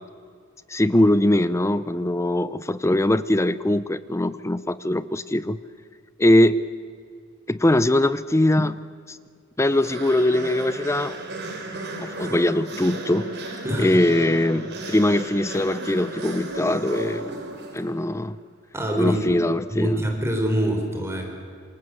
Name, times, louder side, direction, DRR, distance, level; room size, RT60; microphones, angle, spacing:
voice 1, 0.7-5.6 6.2-6.6 7.5-8.8 9.1-9.2 9.6-11.2 12.0-17.3 17.7-18.4 19.0-20.0, left 1 dB, 15° left, 0.6 m, -21 dB
sound 1, 9.6-18.1, right 2 dB, 55° right, 4.7 m, -35 dB
voice 2, 13.6-14.0 18.7-19.4 19.7-21.3, right 1 dB, 15° right, 4.0 m, -25 dB
27.0 x 27.0 x 7.8 m
head